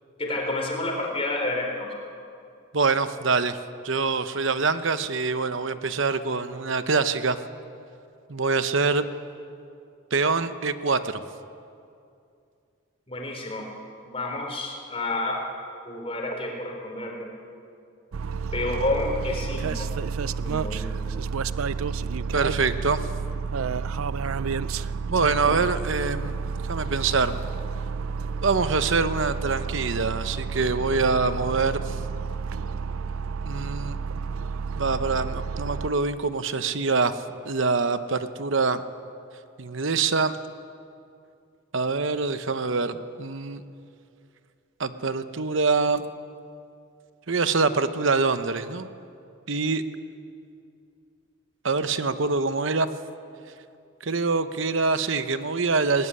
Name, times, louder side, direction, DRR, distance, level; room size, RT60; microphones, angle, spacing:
voice 1, 0.2-1.9 13.1-13.6 14.1-15.4 15.8-17.3 18.5-19.9 20.4-21.0, left 2 dB, 25° left, 1 dB, 3.7 m, -29 dB
voice 2, 2.7-3.6 3.8-7.4 8.3-9.1 10.1-11.2 22.3-23.0 25.1-26.3 26.7-27.4 28.4-32.0 33.4-34.0 34.8-37.1 37.4-38.8 39.6-40.4 41.7-43.6 44.8-46.0 47.3-48.9 49.5-49.8 51.6-52.9 54.0-56.1, right 4 dB, 65° right, 11 dB, 0.9 m, -25 dB
sound 1, 18.1-35.9, right 5 dB, 85° right, 0.5 m, -30 dB
19.0 x 18.0 x 9.9 m, 2.5 s
head